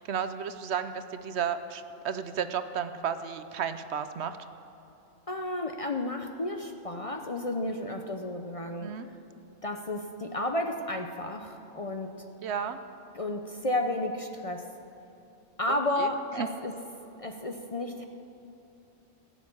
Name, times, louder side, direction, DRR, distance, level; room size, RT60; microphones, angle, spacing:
voice 1, 0.0-4.4 8.8-9.1 12.4-12.8 15.7-16.1 16.4-16.5, right 7 dB, 70° right, 11 dB, 0.9 m, -33 dB
voice 2, 5.3-8.9 9.6-12.2 13.1-14.7 15.6-16.7 17.2-18.0, left 1 dB, 35° left, 5 dB, 0.7 m, -32 dB
16.5 x 7.1 x 9.6 m, 2.9 s
omnidirectional pair, 1.2 m